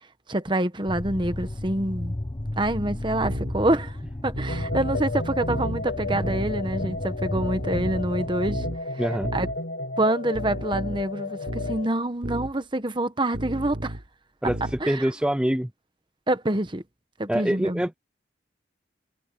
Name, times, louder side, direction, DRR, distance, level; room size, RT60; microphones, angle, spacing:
voice 1, 0.3-2.1 2.6-4.0 4.2-8.6 9.3-9.5 10.0-14.0 14.8-15.1 16.3-16.8 17.2-17.9, right 1 dB, 25° right, 1.2 m, -26 dB
sound 1, 0.9-8.7, left 1 dB, 25° left, 1.0 m, -33 dB
sound 2, 3.2-3.6 4.3-5.1 5.5-5.8 6.2-6.6 7.3-8.1 8.5-8.8 9.2-9.6 10.4-11.0 11.5-11.8 12.2-12.5 13.3-14.0 14.5-14.8, equal, 65° right, 3.9 m, -33 dB
sound 3, 4.5-11.9, left 3 dB, 80° left, 1.5 m, -33 dB
voice 2, 9.0-9.3 14.4-15.7 17.3-18.0, equal, 5° right, 0.4 m, -25 dB
head